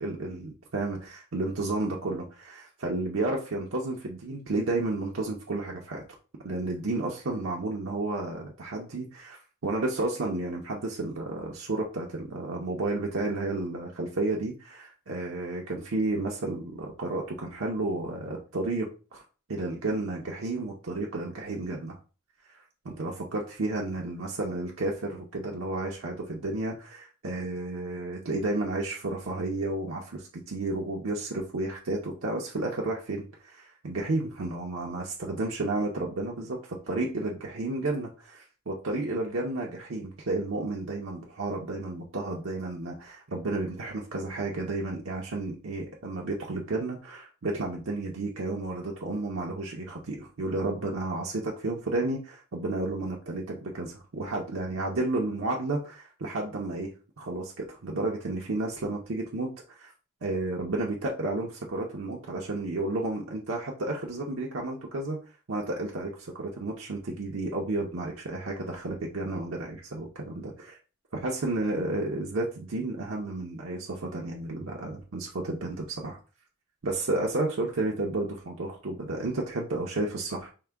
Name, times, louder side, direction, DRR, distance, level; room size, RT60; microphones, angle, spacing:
voice 1, 0.0-6.0 6.4-19.2 19.5-22.0 22.5-22.6 22.8-59.5 59.8-59.9 60.2-65.2 65.5-70.8 71.1-76.2 76.8-80.5, right 2 dB, 65° right, -1 dB, 0.7 m, -32 dB
4.6 x 2.2 x 3.4 m, 0.35 s
head